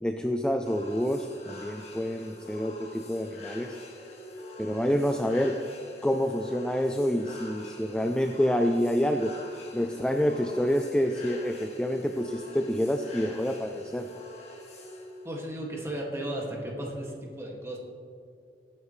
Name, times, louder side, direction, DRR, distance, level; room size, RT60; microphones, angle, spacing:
voice 1, 0.0-3.8 4.6-5.6 6.0-9.3 9.7-14.1, equal, 5° left, 4 dB, 0.4 m, -27 dB
sound 1, 0.6-15.3, left 1 dB, 35° left, 1.8 m, -45 dB
voice 2, 15.2-17.8, right 1 dB, 15° right, -2 dB, 2.1 m, -35 dB
20.5 x 9.4 x 3.2 m, 2.4 s
head